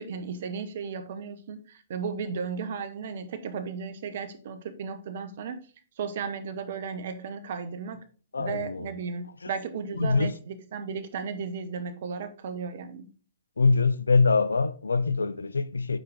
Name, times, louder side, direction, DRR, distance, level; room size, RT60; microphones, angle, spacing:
voice 1, 0.0-5.6 6.0-8.0 8.4-13.1, right 6 dB, 55° right, 1.0 m, -35 dB
voice 2, 8.3-8.8 10.0-10.3 13.6-16.0, left 4 dB, 80° left, 0.5 m, -23 dB
7.6 x 4.9 x 3.5 m
figure-of-eight pair, 120°, 0 cm